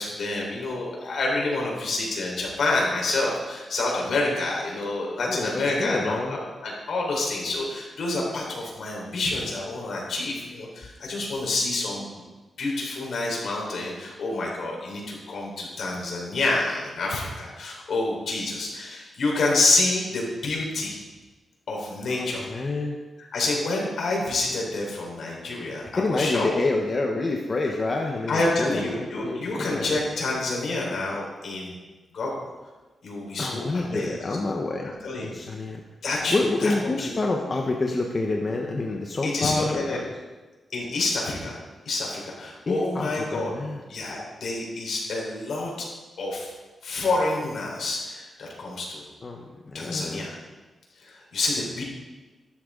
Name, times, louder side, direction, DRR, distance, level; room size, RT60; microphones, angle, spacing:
voice 1, 0.0-12.1 12.6-21.0 21.7-22.5 23.3-26.5 28.3-31.7 32.1-32.5 33.0-34.2 34.8-35.3 36.0-37.1 39.2-40.0 40.7-41.6 41.8-43.5 43.9-45.9 46.2-46.5 46.8-49.0 49.7-50.4 51.0-51.8, left 2 dB, 70° left, -2 dB, 4.7 m, -28 dB
voice 2, 5.1-6.4 22.0-23.0 25.9-30.0 33.4-34.9 35.2-35.8 36.3-40.0 42.7-43.8 49.2-50.3, left 2 dB, 35° left, 1 dB, 1.2 m, -28 dB
14.5 x 12.5 x 4.0 m, 1.2 s
wide cardioid pair, 110°, 0 cm